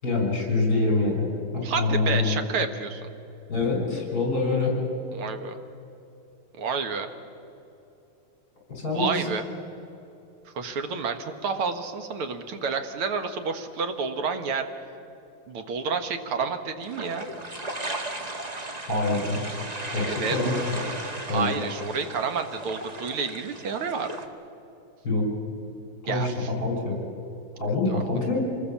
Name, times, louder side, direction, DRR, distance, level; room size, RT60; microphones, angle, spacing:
voice 1, 0.0-1.3 1.5-2.4 3.5-4.8 8.7-9.1 18.9-19.4 19.9-20.8 21.3-21.5 25.0-25.3 26.0-27.0 27.6-28.4, left 3 dB, 40° left, 0 dB, 6.3 m, -25 dB
voice 2, 1.6-3.1 5.1-5.6 6.6-7.1 8.9-9.5 10.5-14.7 15.5-17.3 20.1-20.4 21.3-24.1 26.1-26.5 27.9-28.0, right 5 dB, 80° right, 7 dB, 2.3 m, -29 dB
sound 1, 16.8-24.3, right 2 dB, 20° right, 1.3 m, -36 dB
26.5 x 20.0 x 7.2 m, 2.8 s
omnidirectional pair, 2.4 m